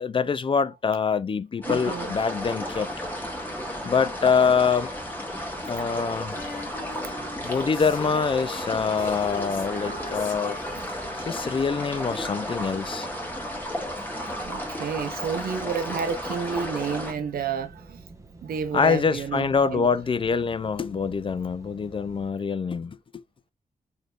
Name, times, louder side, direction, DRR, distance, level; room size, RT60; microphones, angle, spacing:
voice 1, 0.0-2.9 3.8-4.9 5.7-6.4 7.4-10.6 11.3-13.1 18.7-23.2, left 5 dB, 35° left, 0.4 m, -25 dB
sound 1, 1.6-17.1, equal, 10° left, 1.5 m, -33 dB
voice 2, 1.6-2.1 6.7-7.1 7.6-7.7 10.7-10.9 13.8-13.9 14.5-18.0 18.4-19.9, right 6 dB, 80° right, 0.7 m, -31 dB
sound 2, 2.6-22.3, right 2 dB, 20° right, 1.2 m, -48 dB
Female singing, 6.3-13.3 14.4-14.5, left 4 dB, 70° left, 1.3 m, -42 dB
4.1 x 3.3 x 2.4 m
cardioid pair, 75°, 15 cm